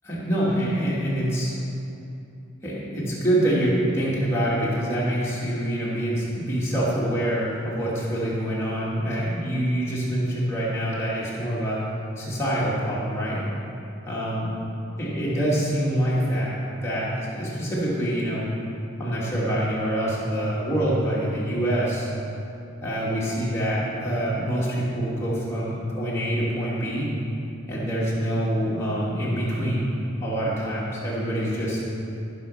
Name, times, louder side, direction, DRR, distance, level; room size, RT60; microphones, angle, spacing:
voice 1, 0.0-1.5 2.6-11.8 12.2-13.4 14.1-14.5 15.0-16.5 16.8-18.5 19.0-22.1 22.8-27.1 27.7-29.9 30.2-31.8, right 1 dB, 15° left, -8 dB, 2.6 m, -25 dB
14.0 x 6.6 x 5.8 m, 2.8 s
head